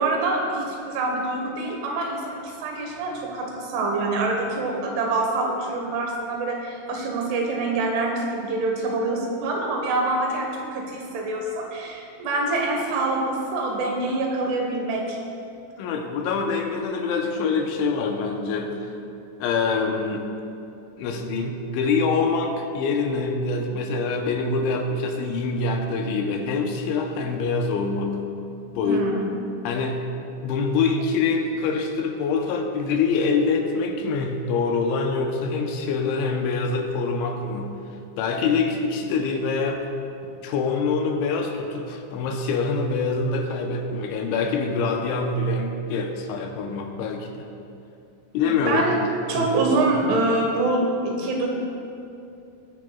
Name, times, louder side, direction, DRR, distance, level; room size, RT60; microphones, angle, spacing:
voice 1, 0.0-15.2 28.8-29.2 48.5-49.0 49.3-51.5, right 2 dB, 80° right, 1 dB, 3.8 m, -25 dB
voice 2, 15.8-18.9 19.4-20.2 21.0-28.2 28.7-29.2 29.6-30.0 30.4-37.7 38.2-39.8 40.4-47.5 48.3-48.8 49.3-49.5, left 4 dB, 80° left, 3 dB, 3.1 m, -25 dB
20.5 x 9.8 x 2.3 m, 2.6 s
omnidirectional pair, 5.5 m